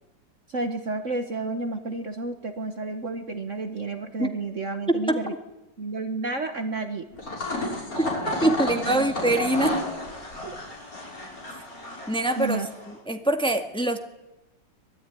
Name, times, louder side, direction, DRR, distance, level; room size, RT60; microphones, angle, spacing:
voice 1, 0.5-5.3 5.8-7.0 8.4-9.1 10.4-10.5 12.4-12.7, right 3 dB, 45° right, 7 dB, 1.6 m, -31 dB
voice 2, 4.9-5.2 8.0-8.1 8.4-9.8 12.1-12.6 13.1-14.0, right 1 dB, 5° left, 6 dB, 1.8 m, -23 dB
sound 1, 7.1-12.9, left 2 dB, 50° left, 6.6 m, -32 dB
25.0 x 20.0 x 9.9 m, 0.98 s
omnidirectional pair, 2.0 m